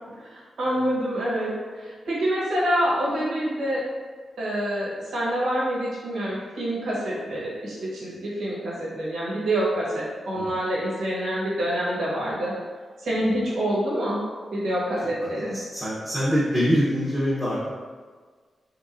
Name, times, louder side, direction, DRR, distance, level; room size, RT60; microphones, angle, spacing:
voice 1, 0.2-3.8 4.4-12.5 13.0-14.2 14.5-15.6, right 1 dB, 85° right, -6 dB, 1.2 m, -26 dB
voice 2, 15.5-17.7, equal, 5° left, -9 dB, 0.8 m, -25 dB
3.6 x 3.1 x 2.5 m, 1.5 s
wide cardioid pair, 140°, 0 cm